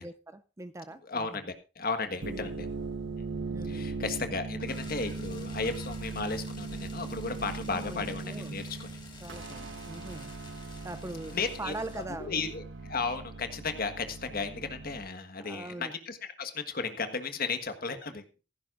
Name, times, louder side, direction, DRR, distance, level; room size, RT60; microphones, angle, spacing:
voice 1, 0.0-1.5 2.3-2.6 3.5-4.0 7.7-8.6 9.2-10.3 10.6-12.4 15.4-16.0, right 2 dB, 15° right, 0.5 m, -42 dB
voice 2, 1.1-2.7 3.6-8.9 11.3-11.7 12.2-18.2, left 4 dB, 50° left, 1.5 m, -34 dB
sound 1, 2.1-15.0, right 3 dB, 75° right, 1.2 m, -39 dB
sound 2, 4.7-12.0, left 3 dB, 25° left, 1.9 m, -50 dB
16.0 x 15.0 x 2.6 m
head